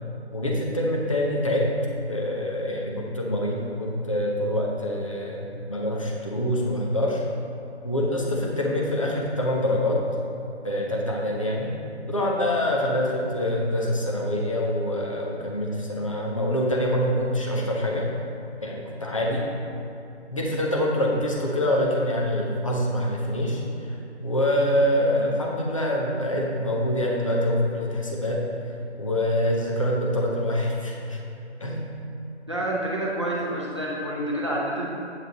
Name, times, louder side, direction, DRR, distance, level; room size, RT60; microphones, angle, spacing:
voice 1, 0.3-1.7 2.1-7.2 7.8-10.0 10.6-11.7 12.1-18.1 18.6-19.4 20.3-28.4 29.0-31.2 31.6-31.9, left 1 dB, 30° left, -2 dB, 0.6 m, -25 dB
voice 2, 32.5-34.9, right 1 dB, 25° right, -5 dB, 0.8 m, -28 dB
8.2 x 7.0 x 3.9 m, 2.9 s
hypercardioid pair, 180°, 34 cm